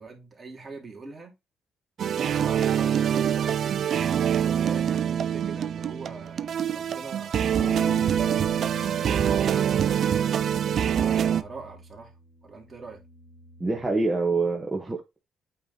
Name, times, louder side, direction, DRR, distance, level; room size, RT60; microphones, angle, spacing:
voice 1, 0.0-1.3 2.1-4.0 4.3-9.9 10.5-12.1 12.4-13.0, right 3 dB, 35° right, 3.1 m, -43 dB
sound 1, 2.0-11.4, right 9 dB, 60° right, 0.5 m, -25 dB
sound 2, 7.6-13.8, left 1 dB, 25° left, 1.6 m, -42 dB
voice 2, 13.6-15.2, right 3 dB, 20° right, 1.6 m, -26 dB
8.6 x 3.7 x 4.0 m
cardioid pair, 90°, 0 cm